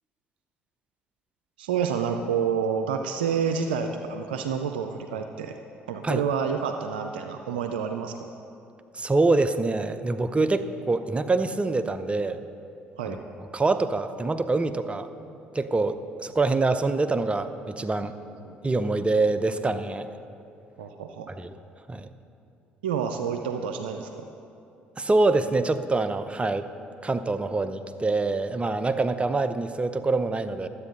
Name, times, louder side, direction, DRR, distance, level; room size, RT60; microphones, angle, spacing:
voice 1, 1.6-5.6 5.9-8.2 13.0-13.2 17.8-17.9 18.4-18.6 20.8-21.3 22.8-24.3, right 7 dB, 85° right, 6 dB, 0.4 m, -29 dB
voice 2, 8.9-12.4 13.1-13.2 13.5-15.1 15.5-18.1 18.6-20.1 21.3-21.5 21.9-22.1 25.0-26.7 27.0-30.7, right 3 dB, 20° right, 10 dB, 0.6 m, -25 dB
12.0 x 8.2 x 5.3 m, 2.6 s
hypercardioid pair, 55°, 5 cm